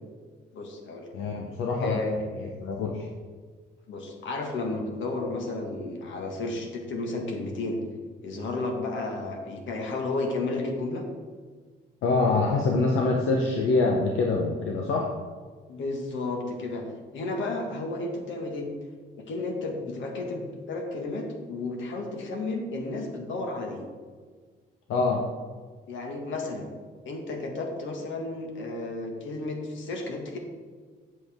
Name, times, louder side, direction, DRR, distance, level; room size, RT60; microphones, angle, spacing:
voice 1, 0.5-1.1 1.8-2.1 3.9-7.8 8.2-11.0 15.7-16.8 17.1-18.7 19.3-23.9 25.9-26.6 27.0-30.4, left 2 dB, 75° left, 2 dB, 1.7 m, -32 dB
voice 2, 1.1-2.0 2.4-3.1 12.0-15.1 24.9-25.3, left 3 dB, 90° left, 1 dB, 0.9 m, -25 dB
8.2 x 7.7 x 3.6 m, 1.5 s
cardioid pair, 90°, 20 cm